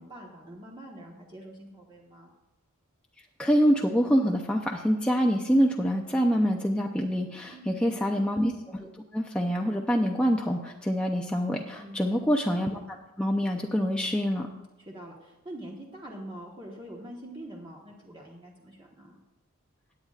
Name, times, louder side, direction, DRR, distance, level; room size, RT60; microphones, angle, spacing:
voice 1, 0.0-2.3 7.5-8.2 11.8-12.2 14.8-19.2, right 1 dB, 20° right, -3 dB, 1.3 m, -45 dB
voice 2, 3.4-12.8 13.2-14.5, equal, 5° left, 0 dB, 0.6 m, -26 dB
17.0 x 9.7 x 2.5 m, 1.1 s
head